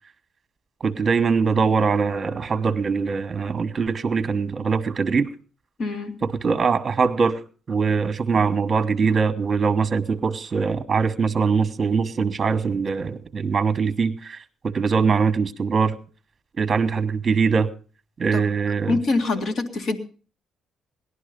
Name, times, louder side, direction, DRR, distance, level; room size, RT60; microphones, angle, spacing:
voice 1, 0.8-5.3 6.2-7.4 7.7-16.0 16.6-17.7 18.2-19.0, right 5 dB, 35° right, 10 dB, 1.2 m, -22 dB
voice 2, 5.8-6.2 18.3-18.5 18.9-20.0, left 3 dB, 55° left, 6 dB, 2.2 m, -24 dB
18.0 x 11.5 x 5.2 m, 0.38 s
cardioid pair, 95°, 0 cm